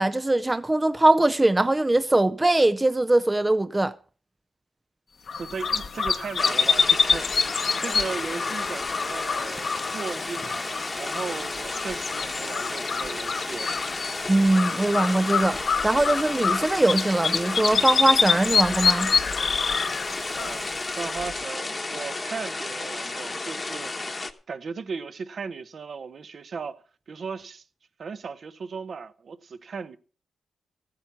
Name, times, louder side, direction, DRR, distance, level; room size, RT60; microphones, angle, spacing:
voice 1, 0.0-3.9 14.3-19.1, right 2 dB, 15° right, 0.5 m, -21 dB
sound 1, 5.3-21.3, left 5 dB, 60° left, 1.1 m, -27 dB
voice 2, 5.3-14.3 20.3-24.2 24.5-27.6 28.0-30.0, right 5 dB, 55° right, 0.9 m, -37 dB
sound 2, 6.4-24.3, left 3 dB, 25° left, 1.1 m, -33 dB
14.5 x 8.8 x 5.8 m
cardioid pair, 95°, 0 cm